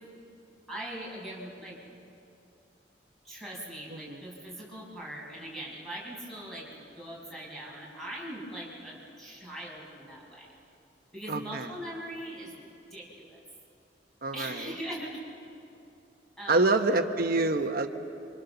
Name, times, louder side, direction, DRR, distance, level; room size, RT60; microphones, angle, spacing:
voice 1, 0.7-1.8 3.2-10.5 11.1-12.5 12.9-13.4 14.3-15.2 16.4-16.8, right 1 dB, ahead, -5 dB, 6.2 m, -41 dB
voice 2, 11.3-11.7 14.2-14.7 16.5-17.9, right 2 dB, 55° right, 6 dB, 1.2 m, -26 dB
28.0 x 25.5 x 7.1 m, 2.7 s
head